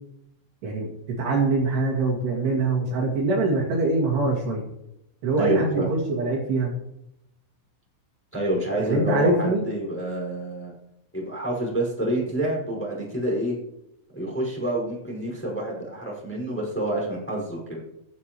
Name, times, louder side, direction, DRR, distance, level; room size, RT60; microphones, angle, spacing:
voice 1, 0.6-4.6 5.2-6.7 8.8-9.7, right 3 dB, 60° right, -3 dB, 3.9 m, -24 dB
voice 2, 5.4-5.9 8.3-10.7 11.1-13.6 14.1-17.8, right 1 dB, ahead, -3 dB, 4.5 m, -28 dB
15.5 x 13.0 x 3.1 m, 0.83 s
omnidirectional pair, 5.8 m